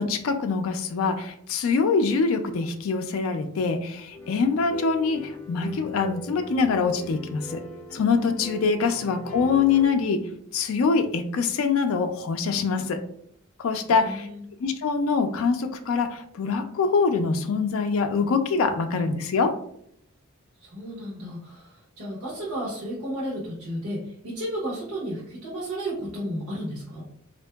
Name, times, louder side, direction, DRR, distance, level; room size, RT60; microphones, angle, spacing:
voice 1, 0.0-7.6 7.9-13.0 13.6-14.3 14.6-19.6, left 5 dB, 65° left, 7 dB, 0.3 m, -24 dB
sound 1, 4.1-9.9, left 2 dB, 10° left, 0.7 m, -41 dB
voice 2, 13.9-14.4 20.6-27.0, equal, 85° right, -6 dB, 0.9 m, -33 dB
3.6 x 2.5 x 2.2 m, 0.68 s
head